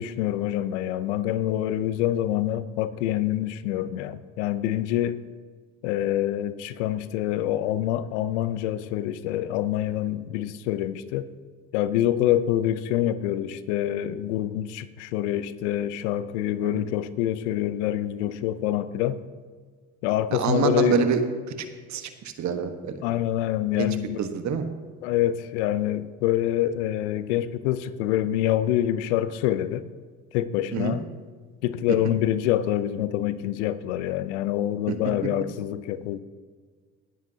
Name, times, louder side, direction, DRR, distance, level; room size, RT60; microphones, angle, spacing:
voice 1, 0.0-5.2 5.8-11.3 11.7-19.2 20.0-21.0 23.0-24.2 25.0-29.8 30.3-31.0 31.6-36.2, left 12 dB, 80° left, 15 dB, 0.7 m, -26 dB
voice 2, 20.3-21.2 21.5-23.0 23.7-24.6 30.7-31.0 34.9-35.0, right 6 dB, 55° right, 7 dB, 1.3 m, -27 dB
18.0 x 9.3 x 2.8 m, 1.5 s
hypercardioid pair, 60°, 34 cm